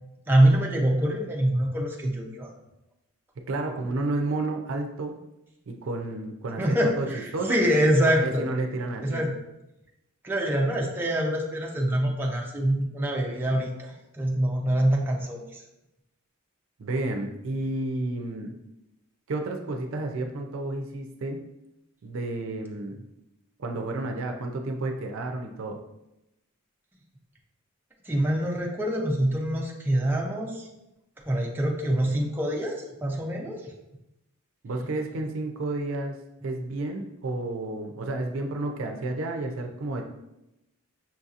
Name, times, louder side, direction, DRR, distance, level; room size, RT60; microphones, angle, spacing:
voice 1, 0.3-2.5 6.6-8.5 9.0-9.4 10.2-15.6 28.1-30.7 31.3-33.6, right 1 dB, 10° right, -2 dB, 0.5 m, -25 dB
voice 2, 3.5-5.2 5.7-7.1 7.3-7.6 8.2-9.2 16.8-18.6 19.3-21.4 22.0-23.0 23.6-25.8 34.6-36.1 36.4-40.0, right 2 dB, 70° right, 4 dB, 0.5 m, -31 dB
5.7 x 2.7 x 2.4 m, 0.90 s
head